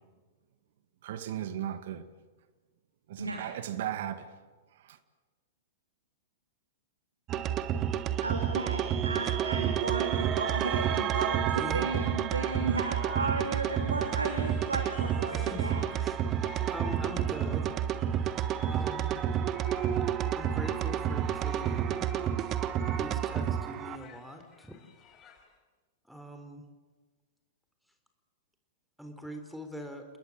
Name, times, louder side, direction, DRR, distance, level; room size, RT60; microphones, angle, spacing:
voice 1, 1.0-2.1 3.1-4.3 4.8-5.0, right 11 dB, 60° right, 2.0 m, -36 dB
sound 1, 7.3-24.0, right 9 dB, 35° right, 1.5 m, -30 dB
voice 2, 8.2-15.9, right 3 dB, 85° right, 3.2 m, -34 dB
sound 2, 14.4-25.6, left 7 dB, 30° left, 5.2 m, -55 dB
voice 3, 15.3-16.3 16.6-17.8 18.7-19.2 20.3-22.1 23.0-24.8 26.1-26.6 29.0-30.0, left 1 dB, ahead, 3.8 m, -43 dB
30.0 x 20.5 x 7.6 m
figure-of-eight pair, 100°, 0 cm